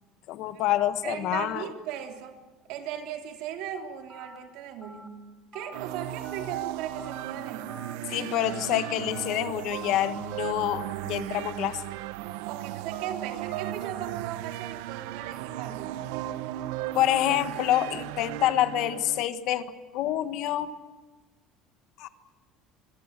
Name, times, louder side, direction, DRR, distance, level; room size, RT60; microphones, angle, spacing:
voice 1, 0.3-1.7 8.1-11.8 16.9-19.7 19.9-20.7 22.0-22.1, left 12 dB, 55° left, 11 dB, 1.4 m, -27 dB
voice 2, 1.0-2.4 2.7-5.2 5.5-7.9 12.5-16.1, right 9 dB, 60° right, 4 dB, 3.6 m, -38 dB
Telephone, 4.1-4.4 4.8-5.1 5.5-5.8 6.2-6.5 7.0-7.2 7.7-7.9 8.4-8.7 9.1-9.4 9.8-10.1, equal, ahead, 1.8 m, -47 dB
sound 1, 5.7-19.2, right 14 dB, 90° right, 1.1 m, -36 dB
25.5 x 23.5 x 7.6 m, 1.3 s
cardioid pair, 170°, 0 cm